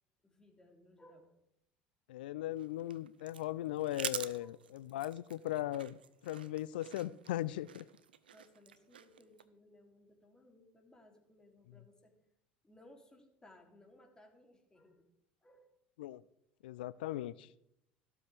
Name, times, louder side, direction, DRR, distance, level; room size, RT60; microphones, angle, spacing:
voice 1, 0.2-1.3 4.4-4.5 6.8-6.9 8.3-12.1 12.6-15.1 15.4-15.8, left 1 dB, 15° left, 2 dB, 3.0 m, -62 dB
voice 2, 2.1-6.0 6.2-7.9 16.0-16.2 16.6-17.5, left 14 dB, 75° left, 19 dB, 0.4 m, -38 dB
sound 1, 2.5-9.4, right 8 dB, 85° right, 0.6 m, -47 dB
14.5 x 12.5 x 3.4 m, 0.79 s
hypercardioid pair, 70°, 5 cm